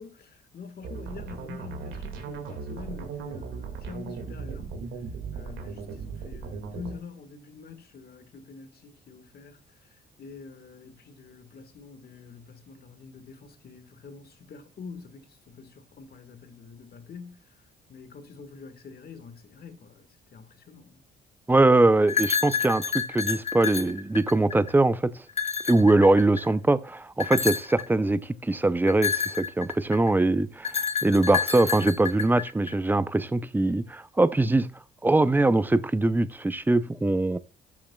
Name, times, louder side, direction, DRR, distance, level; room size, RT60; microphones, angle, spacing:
voice 1, 0.0-4.8 5.3-17.6 17.9-21.0, left 5 dB, 50° left, 1.6 m, -45 dB
sound 1, 0.8-7.0, right 5 dB, 85° right, 2.1 m, -37 dB
voice 2, 21.5-25.1 25.7-34.7 35.0-37.4, right 2 dB, 10° right, 0.5 m, -22 dB
sound 2, 22.1-24.7 25.3-26.5 27.2-27.8 28.9-30.1 30.6-32.7, left 6 dB, 35° left, 0.9 m, -29 dB
13.0 x 7.2 x 2.3 m
cardioid pair, 90°, 20 cm